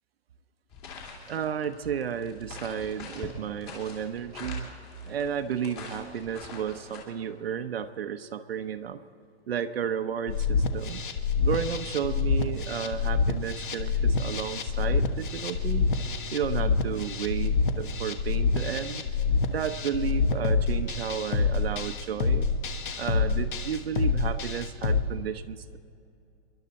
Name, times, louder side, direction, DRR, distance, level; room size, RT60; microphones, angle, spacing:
Schritte auf Kiesel und gras - Steps on pebbles and gras, 0.7-7.0, left 4 dB, 25° left, 2.6 m, -44 dB
voice 1, 1.3-4.7 5.0-9.0 9.5-11.0 11.4-15.9 16.3-19.0 19.5-22.5 23.0-25.8, right 8 dB, 60° right, 9 dB, 0.9 m, -32 dB
sound 1, 10.3-25.0, left 4 dB, 45° left, 1.3 m, -27 dB
28.5 x 11.5 x 4.2 m, 2.5 s
hypercardioid pair, 180°, 34 cm